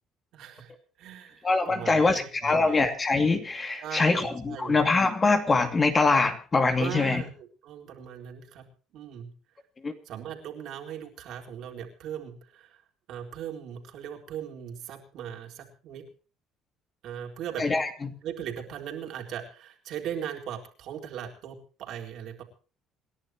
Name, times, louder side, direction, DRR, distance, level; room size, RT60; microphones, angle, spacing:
voice 1, 0.3-0.7 1.0-2.9 3.8-4.8 6.8-8.6 8.9-9.3 10.1-12.8 13.1-16.0 17.0-17.7 18.2-22.4, right 9 dB, 65° right, 2 dB, 4.0 m, -39 dB
voice 2, 1.4-7.2 9.8-9.9 17.6-18.1, left 3 dB, 25° left, 6 dB, 2.5 m, -24 dB
27.5 x 11.0 x 3.0 m, 0.39 s
cardioid pair, 110°, 0 cm